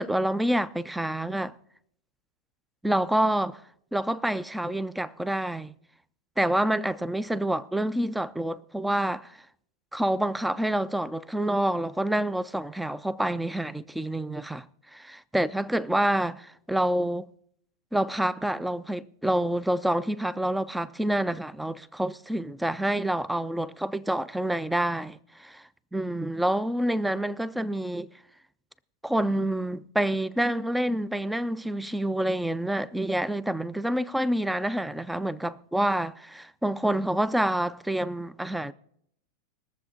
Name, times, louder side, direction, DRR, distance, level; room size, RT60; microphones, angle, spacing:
voice 1, 0.0-1.5 2.8-3.6 3.9-5.7 6.4-9.4 9.9-14.6 14.9-17.3 17.9-25.6 25.9-28.1 29.0-38.7, right 1 dB, 5° right, 0.5 m, -27 dB
21.5 x 7.4 x 4.0 m
figure-of-eight pair, 90°, 0 cm